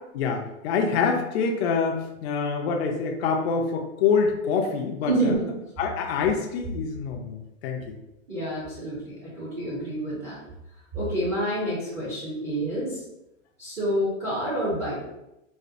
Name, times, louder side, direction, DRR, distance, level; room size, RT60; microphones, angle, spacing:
voice 1, 0.1-5.3 5.8-8.0, left 5 dB, 50° left, 2 dB, 0.5 m, -26 dB
voice 2, 5.1-5.5 8.3-10.4 10.9-13.0 13.6-15.1, right 1 dB, 15° right, -9 dB, 0.6 m, -28 dB
4.1 x 2.1 x 2.5 m, 0.90 s
supercardioid pair, 155°, 40 cm